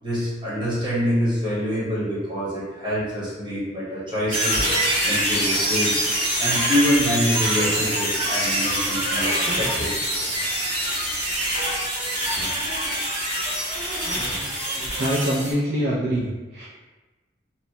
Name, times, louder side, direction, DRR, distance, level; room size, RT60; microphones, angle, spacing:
voice 1, 0.0-4.6 5.0-6.0 6.4-9.9, equal, 25° right, -9 dB, 1.0 m, -25 dB
sound 1, 4.3-15.5, right 1 dB, 80° right, 1.4 m, -24 dB
voice 2, 15.0-16.7, equal, 60° right, -6 dB, 0.4 m, -24 dB
2.8 x 2.1 x 2.7 m, 1.2 s
head